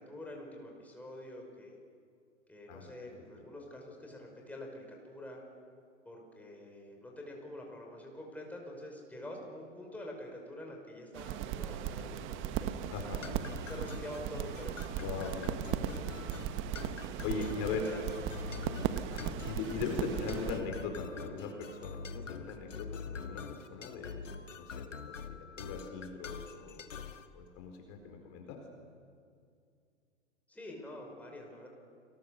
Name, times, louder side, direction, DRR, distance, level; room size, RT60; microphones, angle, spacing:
voice 1, 0.0-1.8 2.5-5.4 6.1-12.7 13.7-14.9 17.3-18.0 18.6-18.7 30.5-31.7, left 1 dB, 5° left, 0 dB, 5.6 m, -46 dB
voice 2, 2.7-3.2 12.9-13.3 15.0-16.2 17.2-17.8 19.1-26.8 27.3-28.6, left 5 dB, 40° left, 3 dB, 4.2 m, -40 dB
sound 1, 11.1-20.6, right 10 dB, 30° right, 1.4 m, -37 dB
sound 2, 13.2-27.3, left 5 dB, 75° left, 1.6 m, -45 dB
30.0 x 21.0 x 6.7 m, 2.3 s
figure-of-eight pair, 100°, 38 cm